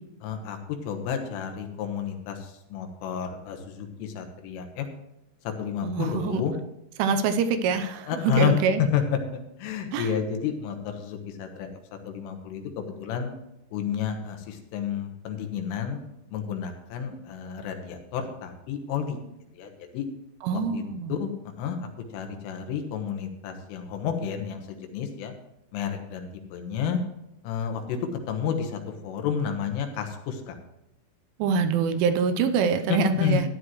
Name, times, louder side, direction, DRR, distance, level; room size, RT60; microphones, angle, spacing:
voice 1, 0.2-0.6 0.9-4.9 5.5-6.5 8.1-9.0 9.3-11.7 12.1-12.6 13.0-13.3 13.7-16.0 16.3-19.2 19.6-20.1 20.5-20.8 21.1-21.3 21.6-24.6 24.9-25.3 25.7-27.0 27.4-28.0 28.3-30.6 32.9-33.5, left 7 dB, 80° left, 5 dB, 3.8 m, -30 dB
voice 2, 5.8-6.4 7.0-8.8 9.9-10.1 20.4-21.2 31.4-33.5, right 5 dB, 80° right, 8 dB, 3.1 m, -25 dB
14.5 x 10.0 x 3.1 m, 0.89 s
omnidirectional pair, 5.8 m